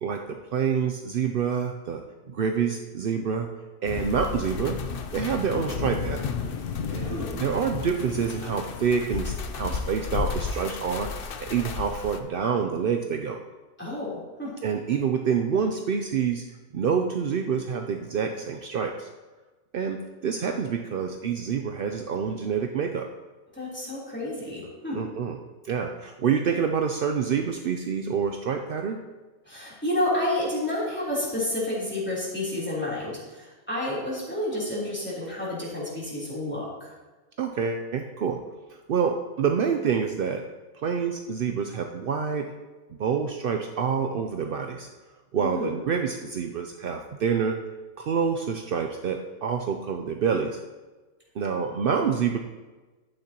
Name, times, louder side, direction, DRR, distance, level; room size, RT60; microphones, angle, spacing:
voice 1, 0.0-3.5 3.8-4.8 5.1-6.3 6.9-13.4 14.6-16.4 16.7-19.1 19.7-23.1 24.9-25.4 25.6-29.0 37.4-38.4 38.7-40.4 40.7-42.5 42.9-44.9 45.3-47.6 48.0-50.6 51.4-52.4, right 6 dB, 70° right, 4 dB, 0.5 m, -27 dB
sound 1, 3.9-12.2, left 6 dB, 55° left, 0.6 m, -33 dB
voice 2, 13.8-14.5 23.5-25.0 29.4-36.9 45.4-45.8, left 1 dB, 5° left, -7 dB, 3.4 m, -30 dB
11.5 x 8.9 x 2.9 m, 1.2 s
omnidirectional pair, 1.6 m